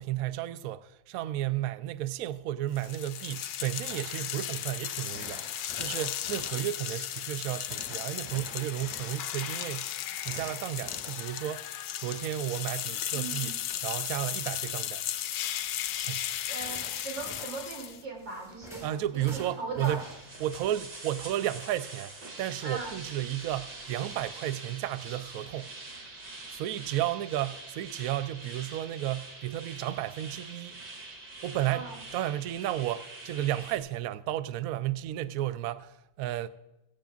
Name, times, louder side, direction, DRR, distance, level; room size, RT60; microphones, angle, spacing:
voice 1, 0.0-11.7 12.0-13.6 13.8-15.0 16.0-16.4 18.8-20.0 20.4-25.7 26.5-30.8 31.4-31.9 32.1-36.5, right 13 dB, 85° right, 0.7 m, -33 dB
sound 1, 2.8-18.0, left 11 dB, 70° left, 1.2 m, -35 dB
sound 2, 3.9-21.0, left 2 dB, ahead, 4.6 m, -51 dB
voice 2, 13.1-13.5 16.5-18.9 19.1-20.0 22.6-23.0 31.7-32.0, right 3 dB, 65° right, 3.4 m, -39 dB
sound 3, 20.0-33.8, right 2 dB, 50° right, 2.5 m, -45 dB
16.5 x 16.0 x 2.4 m
omnidirectional pair, 2.1 m